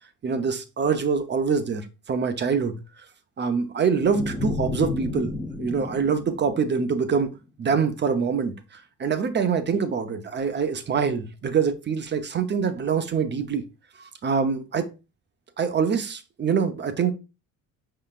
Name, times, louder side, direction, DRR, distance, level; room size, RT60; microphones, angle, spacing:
voice 1, 0.2-3.0 3.4-7.3 7.6-13.6 14.0-14.9 15.6-17.1, right 6 dB, 35° right, 0.6 m, -25 dB
sound 1, 4.0-7.3, left 3 dB, 10° left, 0.6 m, -32 dB
5.4 x 3.8 x 2.4 m
cardioid pair, 115°, 32 cm